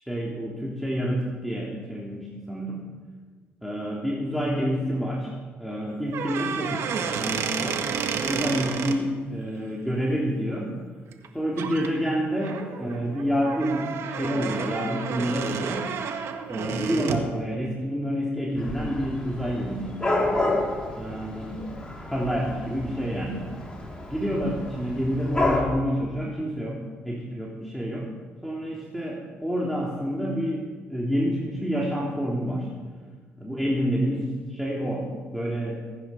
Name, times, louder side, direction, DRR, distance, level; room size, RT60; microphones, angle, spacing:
voice 1, 0.1-2.8 3.6-5.3 5.6-7.9 8.2-10.7 11.3-15.8 16.5-20.4 20.9-21.7 22.1-23.5 24.1-26.8 27.0-28.0 28.4-32.7 33.4-35.1 35.3-35.8, equal, ahead, -4 dB, 3.3 m, -28 dB
sound 1, 6.1-9.0 11.1-11.3 11.6-11.9 12.4-17.3, right 6 dB, 70° right, 1.6 m, -31 dB
Dog / Cat, 18.6-25.6, left 2 dB, 20° left, 4.5 m, -30 dB
20.5 x 10.0 x 5.7 m, 1.5 s
supercardioid pair, 70°, 5 cm